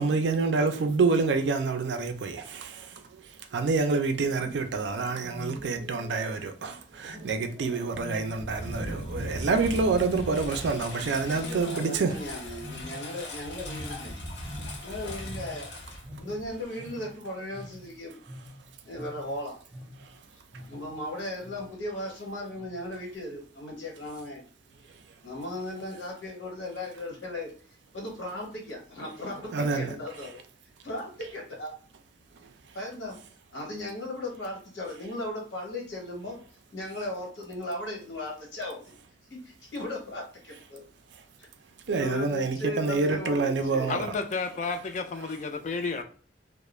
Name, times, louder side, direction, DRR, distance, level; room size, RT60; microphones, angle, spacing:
voice 1, 0.0-12.2 20.0-20.2 20.5-20.7 24.9-25.1 29.5-30.0 32.4-32.5 41.1-41.2 41.9-44.1 45.2-45.3, right 4 dB, 70° right, 0.4 m, -28 dB
Wild animals, 4.3-5.9 7.0-8.9 9.3-10.5 11.1-12.2 12.5-15.0 15.2-20.1 20.5-21.0 21.4-21.8 22.5-23.0, left 1 dB, 10° right, 0.6 m, -45 dB
Engine, 7.9-16.6, left 1 dB, 65° left, 0.7 m, -39 dB
voice 2, 11.2-14.2 14.8-15.8 16.2-18.2 18.9-19.6 20.7-24.4 25.2-27.5 27.9-30.4 30.8-31.7 32.7-33.1 33.5-36.4 36.7-38.9 39.3-40.8 41.4-41.5 41.9-43.9, left 1 dB, 80° left, 1.0 m, -37 dB
voice 3, 43.9-46.0, left 4 dB, 40° left, 0.3 m, -31 dB
2.3 x 2.0 x 3.1 m
head